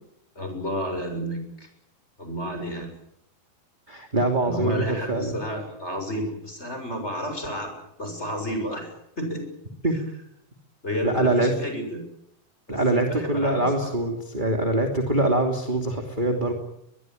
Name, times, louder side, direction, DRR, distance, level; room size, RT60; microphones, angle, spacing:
voice 1, 0.4-1.7 2.2-2.9 4.4-9.5 9.8-10.0 10.8-12.0 12.7-13.9, equal, 15° left, 5 dB, 7.0 m, -31 dB
voice 2, 3.9-5.4 9.8-10.0 11.0-11.5 12.7-16.5, right 2 dB, 15° right, 4 dB, 2.3 m, -24 dB
22.0 x 22.0 x 9.2 m, 0.76 s
omnidirectional pair, 4.3 m